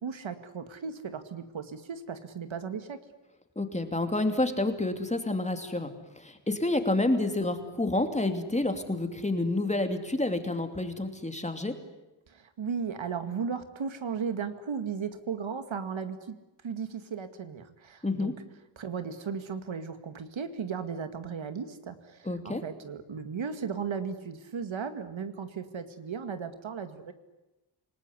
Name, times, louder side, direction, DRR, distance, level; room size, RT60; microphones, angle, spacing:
voice 1, 0.0-3.0 12.3-16.4 16.6-18.3 18.8-27.1, right 6 dB, 80° right, 9 dB, 2.2 m, -36 dB
voice 2, 3.6-11.8 18.0-18.3 22.2-22.6, left 2 dB, 15° left, 6 dB, 2.7 m, -29 dB
28.0 x 19.5 x 9.8 m, 1.0 s
wide cardioid pair, 140°, 46 cm